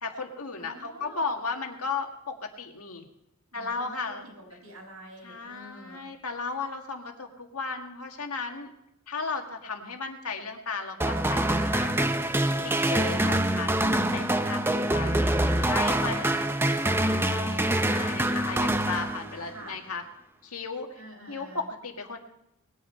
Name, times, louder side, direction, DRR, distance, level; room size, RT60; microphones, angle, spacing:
voice 1, 0.0-3.1 3.5-4.2 5.2-8.7 9.1-15.3 15.6-16.3 16.9-20.0 20.4-21.0 21.3-22.2, left 4 dB, 90° left, 4 dB, 1.8 m, -35 dB
voice 2, 0.6-1.2 3.5-6.1 14.4-18.5 19.4-19.8 20.9-21.7, right 1 dB, 90° right, 0 dB, 5.1 m, -45 dB
sound 1, 11.0-19.6, right 1 dB, 10° right, 0.6 m, -25 dB
20.0 x 8.7 x 5.6 m, 0.82 s
head